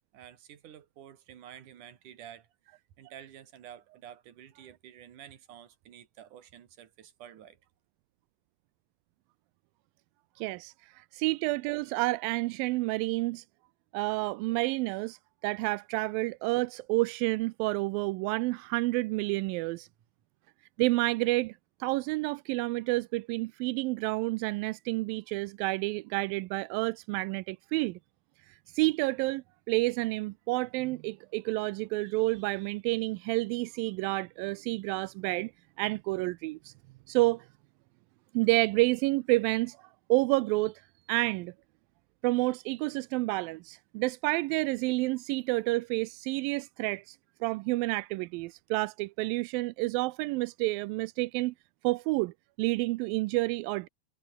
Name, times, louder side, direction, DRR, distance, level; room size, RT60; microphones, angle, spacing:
voice 1, 0.1-7.6, right 10 dB, 55° right, 3.2 m, -50 dB
voice 2, 10.4-13.4 13.9-15.2 15.4-19.9 20.8-21.6 21.8-28.0 28.7-35.5 35.8-36.7 37.1-37.5 38.3-40.8 41.1-41.5 42.2-47.2 47.4-51.5 51.8-53.9, right 22 dB, 80° right, 2.1 m, -29 dB
omnidirectional pair, 4.6 m